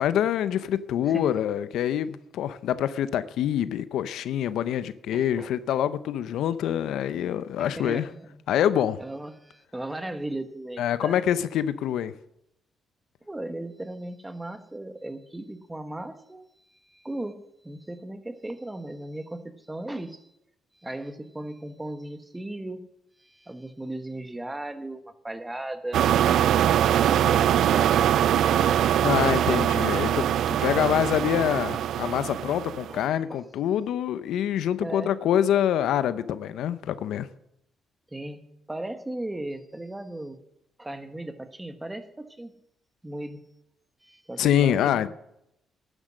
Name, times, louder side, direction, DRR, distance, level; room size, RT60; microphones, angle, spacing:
voice 1, 0.0-8.1 8.5-9.0 10.8-12.1 29.0-37.3 44.4-45.1, left 10 dB, 80° left, 0.6 m, -25 dB
voice 2, 1.0-1.3 5.1-5.5 7.6-8.4 9.0-11.2 13.3-16.5 16.9-20.3 20.8-22.9 23.2-26.0 30.6-30.9 32.9-33.4 34.8-35.1 38.1-40.4 40.8-42.5 43.0-43.4 44.0-45.1, right 1 dB, 10° right, 1.3 m, -37 dB
sound 1, 25.9-33.0, right 10 dB, 75° right, 0.5 m, -22 dB
12.0 x 9.8 x 6.3 m
cardioid pair, 90°, 0 cm